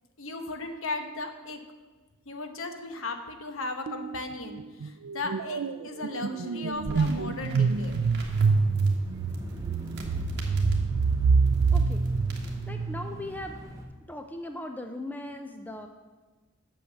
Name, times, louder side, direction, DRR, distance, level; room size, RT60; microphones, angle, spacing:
voice 1, 0.2-1.6 2.3-7.9, left 3 dB, 65° left, 6 dB, 1.0 m, -36 dB
sound 1, 3.9-4.2 4.5-13.2, right 4 dB, 70° right, 0.4 m, -26 dB
sound 2, 6.7-12.7, right 1 dB, 50° right, 1.5 m, -44 dB
Bicycle / Mechanisms, 7.7-13.9, equal, 15° right, 0.9 m, -39 dB
voice 2, 11.7-12.0 12.7-13.6 14.1-15.9, left 1 dB, 10° left, 5 dB, 0.4 m, -38 dB
8.6 x 6.3 x 7.0 m, 1.3 s
head